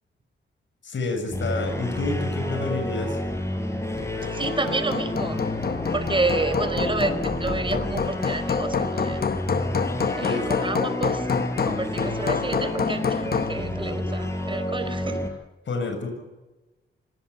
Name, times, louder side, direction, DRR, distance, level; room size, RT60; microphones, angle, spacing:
voice 1, 0.8-3.2 10.2-10.5 15.7-16.1, left 3 dB, 60° left, 6 dB, 7.3 m, -29 dB
sound 1, 1.3-15.3, left 1 dB, 15° left, 5.4 m, -30 dB
Hammer, 4.0-13.6, left 6 dB, 45° left, 1.1 m, -28 dB
voice 2, 4.3-5.4 5.9-9.2 10.2-11.3 11.6-15.2, right 2 dB, 25° right, 10 dB, 4.5 m, -29 dB
26.0 x 19.0 x 8.4 m, 1.1 s
cardioid pair, 80°, 21 cm